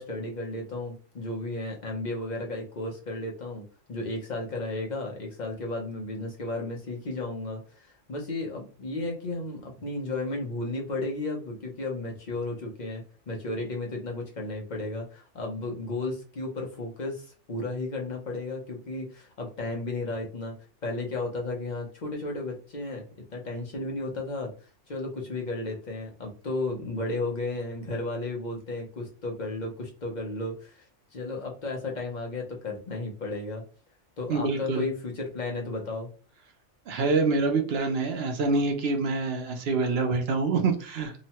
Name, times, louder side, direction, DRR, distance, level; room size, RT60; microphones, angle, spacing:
voice 1, 0.0-20.5 20.8-23.0 23.3-24.5 24.9-30.9 31.1-33.6 34.2-36.1, left 2 dB, 45° left, 1 dB, 0.7 m, -34 dB
voice 2, 34.3-34.9 36.9-41.1, right 3 dB, 65° right, 6 dB, 0.7 m, -26 dB
2.9 x 2.1 x 2.8 m, 0.37 s
omnidirectional pair, 1.3 m